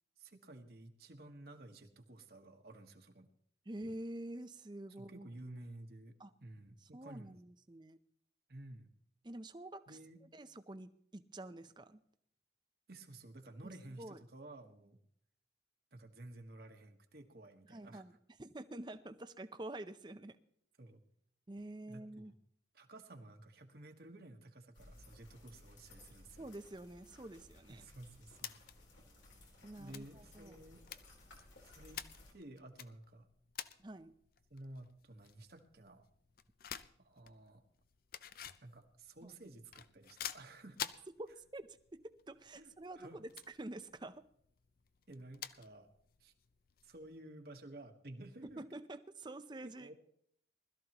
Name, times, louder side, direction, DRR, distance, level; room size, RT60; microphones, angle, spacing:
voice 1, 0.2-3.3 5.0-7.4 8.5-8.9 9.9-10.2 12.9-15.0 15.9-18.0 20.8-21.0 21.9-22.3 22.7-26.5 27.7-28.6 29.8-30.8 31.6-32.0 32.3-33.3 34.5-36.1 37.0-37.6 38.6-40.8 42.5-43.2 45.1-45.9 46.2-46.3 46.8-48.6 49.6-49.9, right 1 dB, 55° right, 4 dB, 1.4 m, -53 dB
voice 2, 3.7-5.3 6.2-6.3 6.9-8.0 9.2-10.0 10.3-12.0 13.6-14.2 17.7-20.4 21.5-22.3 26.4-27.9 29.6-30.6 33.8-34.1 39.2-39.3 41.2-43.3 43.6-44.2 48.4-49.9, right 1 dB, 25° right, 10 dB, 0.6 m, -48 dB
sound 1, 24.7-32.3, left 2 dB, 85° left, 3.8 m, -60 dB
sound 2, 28.2-47.2, left 9 dB, 50° left, 0.5 m, -52 dB
20.5 x 13.0 x 3.0 m, 0.66 s
head